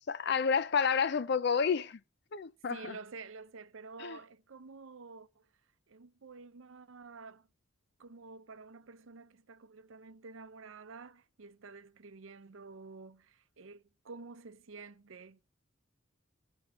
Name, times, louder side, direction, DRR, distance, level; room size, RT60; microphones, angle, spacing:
voice 1, 0.1-2.0 2.3-3.0 4.0-4.2, left 6 dB, 55° left, 0.4 m, -30 dB
voice 2, 2.7-5.4 5.9-7.5 8.0-15.4, right 4 dB, 75° right, 0.6 m, -50 dB
15.0 x 5.4 x 4.5 m
head